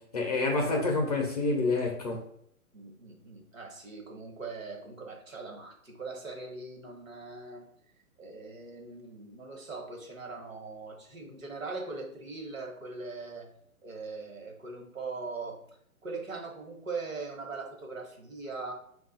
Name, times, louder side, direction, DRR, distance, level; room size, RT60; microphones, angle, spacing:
voice 1, 0.1-2.2, left 3 dB, 30° left, 0 dB, 0.6 m, -28 dB
voice 2, 2.7-7.6 8.2-13.5 13.8-15.6 16.0-18.7, right 3 dB, 65° right, 2 dB, 1.3 m, -41 dB
5.2 x 2.4 x 3.9 m, 0.69 s
figure-of-eight pair, 135°, 43 cm